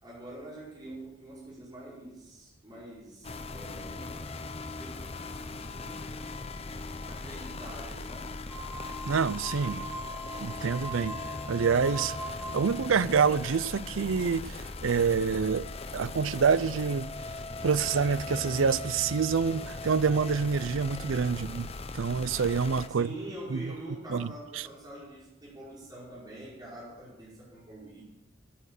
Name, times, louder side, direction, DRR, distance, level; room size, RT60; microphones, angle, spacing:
voice 1, 0.0-4.3 4.8-6.6 7.0-8.4 21.3-21.6 22.9-28.0, right 1 dB, 20° right, 5.1 m, -45 dB
sound 1, 3.2-22.9, left 3 dB, 30° left, 0.7 m, -39 dB
sound 2, 8.5-12.9, right 1 dB, 5° left, 6.1 m, -41 dB
voice 2, 9.0-9.9 10.4-11.2 11.5-12.1 12.5-15.7 15.9-17.1 17.6-21.7 21.9-23.1 23.5-23.6 24.1-24.3, right 6 dB, 80° right, 0.5 m, -27 dB
11.5 x 10.0 x 6.6 m
head